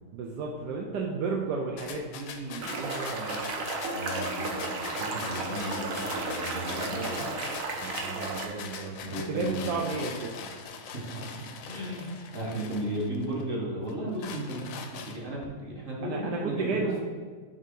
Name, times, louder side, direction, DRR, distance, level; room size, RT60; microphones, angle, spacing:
voice 1, 0.1-3.4 6.7-7.2 7.8-10.6 16.0-17.0, right 4 dB, 80° right, 0 dB, 1.2 m, -33 dB
sound 1, 1.8-13.4 13.9-15.5, left 6 dB, 70° left, 0.9 m, -42 dB
sound 2, 2.6-8.5, right 3 dB, 60° right, 1.1 m, -34 dB
voice 2, 3.9-7.4 9.0-9.9 10.7-11.1 11.7-14.7 15.0-17.0, right 1 dB, 35° right, -3 dB, 1.2 m, -35 dB
7.2 x 2.7 x 5.2 m, 1.6 s
omnidirectional pair, 1.8 m